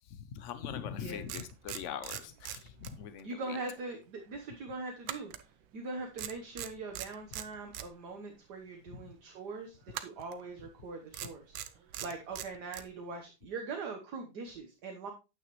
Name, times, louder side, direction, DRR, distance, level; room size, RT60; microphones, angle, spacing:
voice 1, 0.1-3.6 8.9-9.0, left 8 dB, 70° left, 12 dB, 0.7 m, -42 dB
sound 1, 0.8-0.9 1.3-3.3 3.6-3.8 5.0-5.9 6.2-7.9 9.9-10.4 11.1-12.9, right 11 dB, 85° right, 1.5 m, -41 dB
voice 2, 3.2-5.3 5.7-11.5 12.0-15.1, right 3 dB, 60° right, 3 dB, 1.7 m, -42 dB
9.0 x 9.0 x 3.1 m, 0.28 s
omnidirectional pair, 2.1 m